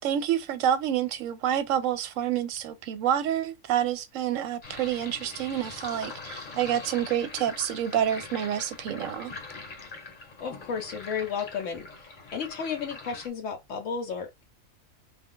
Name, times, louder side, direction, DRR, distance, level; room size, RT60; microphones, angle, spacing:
voice 1, 0.0-9.3, right 10 dB, 75° right, 0.9 m, -28 dB
Sink (filling or washing), 4.6-13.3, left 3 dB, 40° left, 0.9 m, -43 dB
voice 2, 10.4-14.4, left 6 dB, 70° left, 1.0 m, -33 dB
2.4 x 2.4 x 3.6 m
omnidirectional pair, 1.4 m